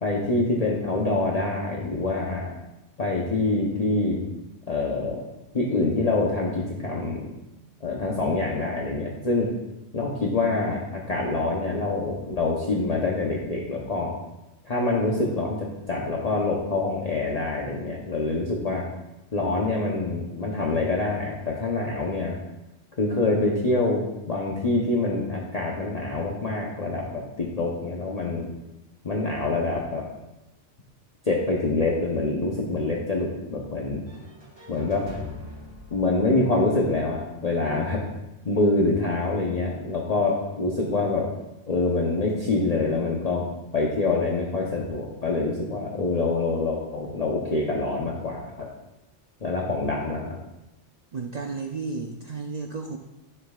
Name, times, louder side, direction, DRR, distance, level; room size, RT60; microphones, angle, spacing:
voice 1, 0.0-2.5 3.0-4.2 4.7-5.2 5.5-7.3 7.8-9.5 9.9-14.1 14.6-18.8 19.3-22.3 23.0-28.5 29.0-30.0 31.2-34.0 34.7-35.0 35.9-38.0 38.4-41.3 41.7-43.5 43.7-48.7 49.4-50.4, left 2 dB, 35° left, -3 dB, 0.9 m, -25 dB
sound 1, 34.1-38.0, left 2 dB, 20° right, 1.5 m, -43 dB
voice 2, 51.1-53.0, right 4 dB, 45° right, 2 dB, 0.6 m, -33 dB
11.5 x 6.8 x 2.4 m, 0.98 s
omnidirectional pair, 1.2 m